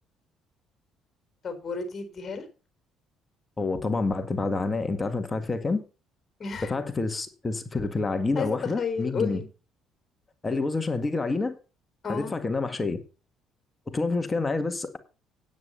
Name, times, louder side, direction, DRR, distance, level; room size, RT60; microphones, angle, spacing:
voice 1, 1.4-2.4 6.4-6.7 8.3-9.5 12.0-12.4, left 5 dB, 40° left, 7 dB, 4.2 m, -32 dB
voice 2, 3.6-5.8 6.7-9.4 10.4-11.6 12.1-13.0 13.9-15.0, left 3 dB, 25° left, 9 dB, 1.7 m, -28 dB
9.4 x 9.2 x 5.6 m, 0.34 s
supercardioid pair, 70°, 0 cm